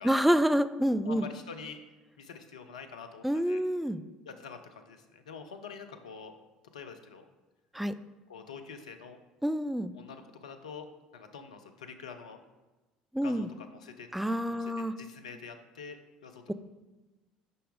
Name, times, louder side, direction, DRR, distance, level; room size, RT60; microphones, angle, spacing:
voice 1, 0.0-1.3 3.2-4.0 7.7-7.9 9.4-9.9 13.1-13.5 14.1-14.9, equal, 5° right, 11 dB, 0.3 m, -27 dB
voice 2, 1.0-1.8 2.2-3.6 4.3-6.3 6.7-7.3 8.3-9.2 9.9-10.9 11.1-12.4 13.2-14.1 14.5-16.5, left 5 dB, 75° left, 7 dB, 0.5 m, -46 dB
5.5 x 5.3 x 3.7 m, 1.1 s
figure-of-eight pair, 60°, 4 cm